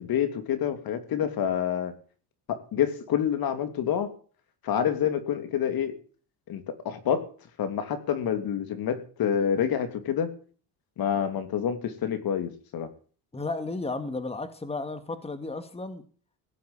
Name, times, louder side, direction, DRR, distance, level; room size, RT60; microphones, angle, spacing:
voice 1, 0.0-1.9 2.5-4.1 4.6-5.9 6.5-7.3 7.6-10.3 11.0-12.9, left 9 dB, 55° left, 3.1 m, -27 dB
voice 2, 13.3-16.0, left 3 dB, 15° left, 2.2 m, -33 dB
17.0 x 8.0 x 9.0 m
cardioid pair, 110°, 42 cm